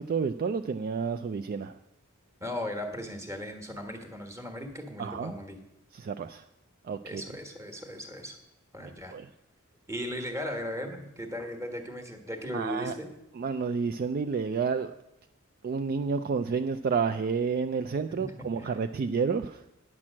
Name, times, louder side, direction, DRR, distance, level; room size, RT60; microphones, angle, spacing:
voice 1, 0.0-1.8 5.0-5.3 5.9-6.4 6.8-7.2 9.1-9.3 12.5-13.0 13.3-14.9 15.6-19.6, right 5 dB, 40° right, 9 dB, 0.3 m, -30 dB
voice 2, 2.4-5.6 7.0-8.4 8.7-9.2 9.9-13.1 18.5-18.7, equal, 15° right, 4 dB, 1.3 m, -37 dB
9.7 x 6.0 x 7.4 m, 0.87 s
head